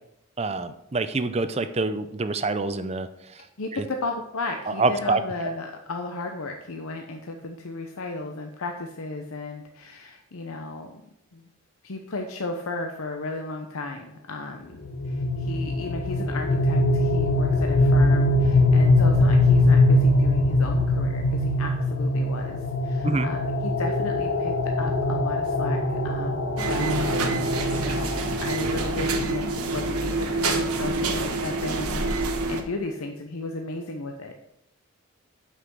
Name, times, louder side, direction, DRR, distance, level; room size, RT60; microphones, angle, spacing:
voice 1, 0.4-3.1 4.8-5.2 23.0-23.3, right 3 dB, 30° right, 11 dB, 0.5 m, -26 dB
voice 2, 3.6-11.0 11.3-11.4 11.8-22.6 22.8-34.5, left 2 dB, 75° left, 4 dB, 0.8 m, -34 dB
sound 1, 14.8-29.7, left 2 dB, 60° left, 1.1 m, -22 dB
sound 2, 26.6-32.6, right 2 dB, 85° right, 1.2 m, -27 dB
8.2 x 5.8 x 6.1 m, 0.82 s
head